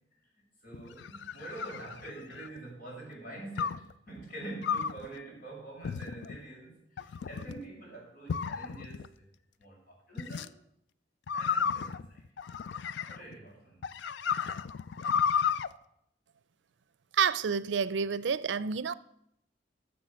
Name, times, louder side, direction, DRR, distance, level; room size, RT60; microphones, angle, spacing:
voice 1, 0.1-9.2 9.6-10.5 11.3-12.2 13.1-14.0, right 2 dB, 50° left, 6.0 m, -46 dB
sound 1, 0.7-2.6 3.6-3.9 4.6-5.1 5.8-6.4 7.0-7.6 8.3-9.1 10.2-10.5 11.3-13.3 13.8-15.7, left 7 dB, 75° left, 0.4 m, -33 dB
voice 2, 17.1-18.9, right 6 dB, 85° right, 0.5 m, -29 dB
13.5 x 7.0 x 6.4 m
head